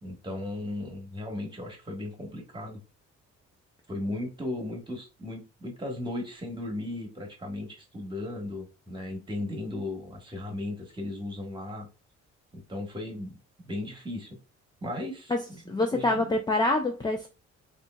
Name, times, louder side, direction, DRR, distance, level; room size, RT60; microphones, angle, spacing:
voice 1, 0.0-2.8 3.9-11.9 12.5-13.4 13.6-14.4 14.8-16.3, left 1 dB, 15° right, 1.3 m, -36 dB
voice 2, 15.7-17.3, left 2 dB, 15° left, 0.4 m, -25 dB
3.7 x 2.9 x 2.2 m
cardioid pair, 90°, 30 cm